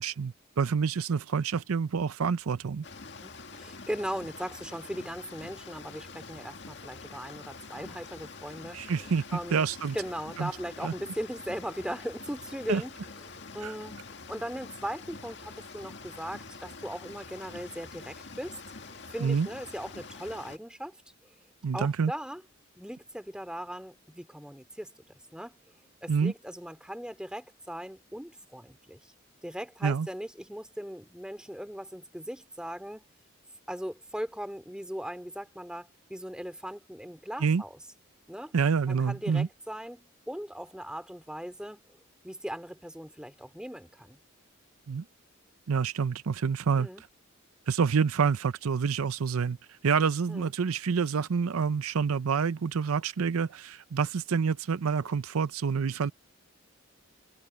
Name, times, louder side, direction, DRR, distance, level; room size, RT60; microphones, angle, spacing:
voice 1, 0.0-2.9 8.7-10.0 10.4-10.5 10.8-10.9 12.7-12.8 13.6-13.7 19.2-19.5 21.6-22.1 26.1-26.3 29.8-30.1 37.4-37.6 38.5-39.5 44.9-45.0 45.7-46.9 47.7-49.6 49.8-56.1, right 6 dB, 90° right, 0.5 m, -27 dB
sound 1, 2.8-20.6, left 4 dB, 55° left, 2.1 m, -46 dB
voice 2, 3.2-9.7 9.9-13.0 13.3-14.0 14.3-18.6 19.1-21.0 21.7-22.4 22.8-24.9 25.3-25.6 26.0-29.1 29.4-33.1 33.7-37.8 38.3-38.5 38.9-41.8 42.2-44.2 46.7-47.0 50.3-50.5, equal, 5° right, 2.6 m, -39 dB
head